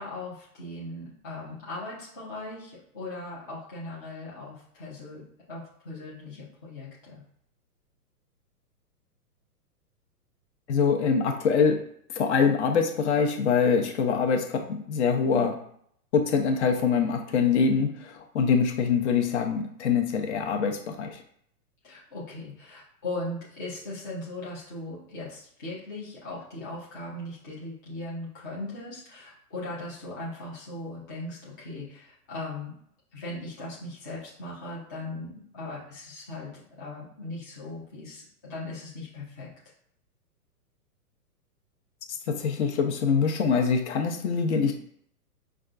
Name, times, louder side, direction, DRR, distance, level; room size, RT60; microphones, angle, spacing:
voice 1, 0.0-5.2 5.5-7.2 21.8-32.7 33.1-39.5, left 2 dB, 15° left, -8 dB, 0.4 m, -38 dB
voice 2, 10.7-11.8 12.1-15.6 16.1-21.2 42.3-44.8, left 5 dB, 45° left, 4 dB, 0.7 m, -24 dB
5.1 x 2.3 x 2.4 m, 0.65 s
hypercardioid pair, 125°, 48 cm